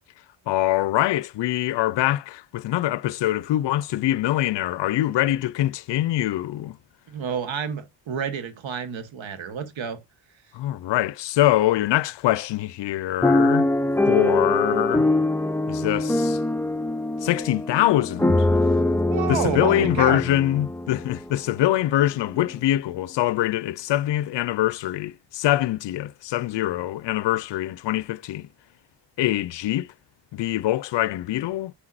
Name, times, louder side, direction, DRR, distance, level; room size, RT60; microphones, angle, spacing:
voice 1, 0.5-6.8 10.5-13.7 14.1-15.1 15.7-16.4 17.2-18.5 19.3-28.5 29.2-29.9 30.3-31.7, left 14 dB, 60° left, 0.5 m, -24 dB
voice 2, 7.1-10.0 19.1-20.2, right 7 dB, 70° right, 1.3 m, -29 dB
sound 1, 13.2-21.3 21.9-22.0 22.3-22.6, left 2 dB, 5° left, 0.5 m, -23 dB
8.1 x 5.8 x 2.5 m
supercardioid pair, 50°, 48 cm